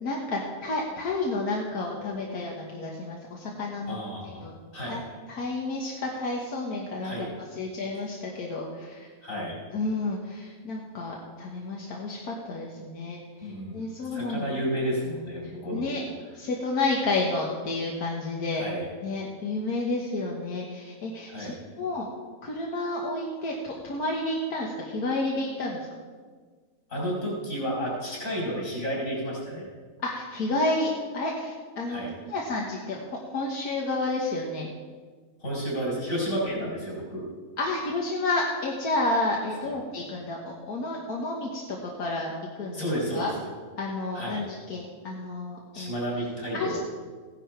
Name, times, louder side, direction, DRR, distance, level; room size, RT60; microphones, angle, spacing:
voice 1, 0.0-4.0 4.2-4.5 4.8-5.0 5.3-9.1 9.7-14.5 15.7-16.0 16.3-18.6 19.0-22.1 22.4-25.9 30.0-32.0 32.3-33.0 33.3-34.7 37.6-42.3 42.6-42.9 43.1-43.3 43.8-45.9 46.5-46.8, left 2 dB, 90° left, -1 dB, 1.9 m, -30 dB
voice 2, 3.9-4.4 4.7-5.0 7.0-7.3 9.2-9.6 13.4-13.8 14.0-16.1 18.6-18.9 21.3-21.6 26.9-29.6 31.9-32.1 35.4-37.2 42.7-43.3 44.1-44.4 45.7-46.8, equal, 60° left, -5 dB, 5.5 m, -31 dB
16.0 x 11.0 x 4.6 m, 1.5 s
omnidirectional pair, 1.6 m